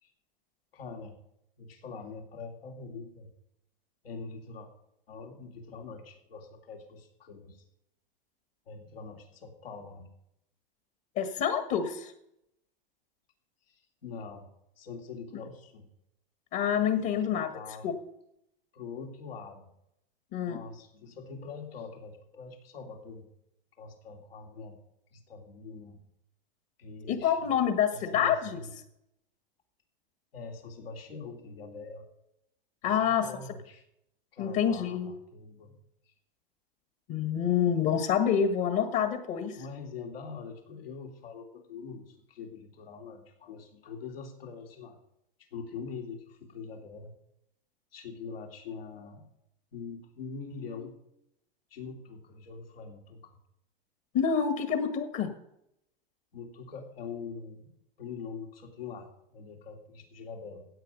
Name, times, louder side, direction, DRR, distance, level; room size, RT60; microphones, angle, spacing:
voice 1, 0.7-1.2 1.6-3.3 4.0-4.7 5.1-7.6 8.7-10.1 13.7-14.5 14.8-15.9 17.1-17.9 18.7-19.7 20.4-23.3 23.8-24.8 25.1-26.0 26.8-27.5 27.9-28.7 30.3-32.1 32.8-33.8 34.3-35.8 39.5-45.0 45.4-47.1 47.9-49.2 49.7-51.0 51.7-53.4 56.3-60.7, left 5 dB, 80° left, 3 dB, 2.8 m, -44 dB
voice 2, 11.2-12.1 16.5-17.5 17.8-17.9 20.3-20.6 27.1-28.6 32.8-33.3 34.4-35.1 37.1-39.6 54.1-55.3, left 8 dB, 45° left, 9 dB, 1.7 m, -27 dB
15.5 x 8.6 x 5.3 m, 0.79 s
hypercardioid pair, 110°, 29 cm